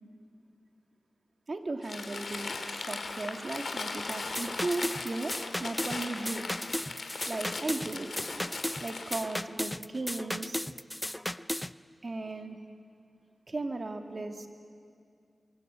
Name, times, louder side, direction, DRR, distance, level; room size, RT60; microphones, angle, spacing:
voice 1, 1.5-5.3 5.6-6.5 7.3-8.1 8.8-10.6 12.0-12.6 13.5-14.5, right 2 dB, 55° right, 4 dB, 2.5 m, -36 dB
Crumpling crinkling, 1.8-9.4, left 3 dB, 75° left, 2.9 m, -38 dB
sound 1, 4.1-11.7, left 1 dB, 10° left, 0.7 m, -35 dB
27.0 x 23.5 x 8.9 m, 2.3 s
cardioid pair, 40°, 0 cm